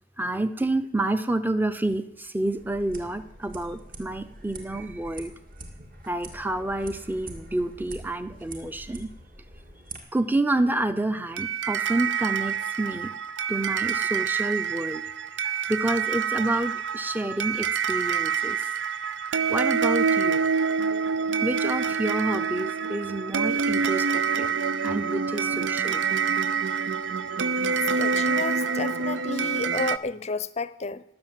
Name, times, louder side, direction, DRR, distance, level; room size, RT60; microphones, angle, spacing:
voice 1, 0.2-5.3 6.1-9.1 10.1-13.1 13.5-15.0 15.7-18.6 19.5-20.5 21.4-24.6 24.8-26.0, right 1 dB, 10° right, 0.7 m, -28 dB
sound 1, 2.6-10.0, right 2 dB, 45° right, 2.2 m, -44 dB
sound 2, 11.4-30.0, right 6 dB, 70° right, 0.5 m, -26 dB
voice 2, 28.0-31.0, left 3 dB, 35° left, 0.6 m, -31 dB
19.5 x 7.2 x 7.6 m
head